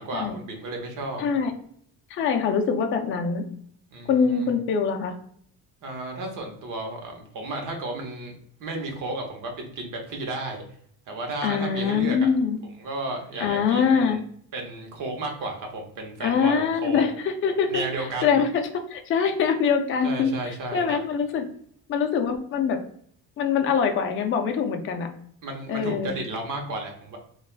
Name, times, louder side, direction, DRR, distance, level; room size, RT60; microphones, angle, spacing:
voice 1, 0.0-1.2 3.9-4.5 5.8-10.6 11.1-12.3 12.8-14.2 14.5-17.0 17.7-18.4 20.0-21.0 25.4-27.2, right 2 dB, 55° right, 3 dB, 0.9 m, -33 dB
voice 2, 1.2-1.5 2.1-3.4 4.1-5.1 11.4-12.6 13.4-14.2 16.2-21.4 21.9-22.8 23.4-25.1 25.7-26.1, left 6 dB, 35° left, 5 dB, 0.4 m, -24 dB
3.3 x 2.3 x 2.4 m, 0.65 s
cardioid pair, 140°, 37 cm